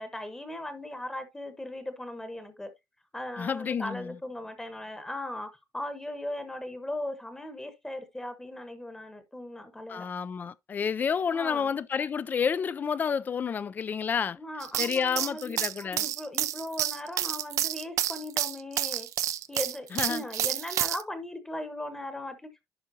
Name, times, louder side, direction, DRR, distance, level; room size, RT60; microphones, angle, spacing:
voice 1, 0.0-2.7 3.1-10.1 11.3-11.8 14.4-19.1 19.5-22.6, left 1 dB, 10° left, 1.1 m, -38 dB
voice 2, 3.4-4.2 9.9-14.4 14.8-16.0 19.9-20.2, left 6 dB, 30° left, 0.4 m, -30 dB
sound 1, 14.6-21.0, right 12 dB, 60° right, 0.5 m, -29 dB
11.0 x 5.1 x 2.7 m
cardioid pair, 170°, 6 cm